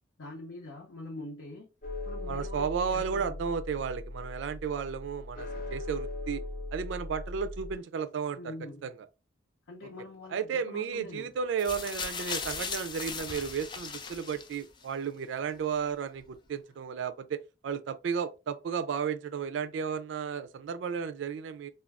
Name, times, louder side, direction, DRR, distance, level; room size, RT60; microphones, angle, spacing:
voice 1, 0.2-1.7 2.1-3.3 8.3-8.9 9.7-11.3, left 2 dB, 90° left, 0.7 m, -44 dB
sound 1, 1.8-7.7, left 1 dB, 50° left, 0.7 m, -39 dB
voice 2, 2.3-6.4 6.7-8.5 8.8-8.9 10.3-21.7, right 6 dB, 80° right, 0.3 m, -33 dB
sound 2, 11.6-14.8 15.7-15.8, left 5 dB, 25° left, 0.3 m, -37 dB
2.4 x 2.2 x 3.4 m
head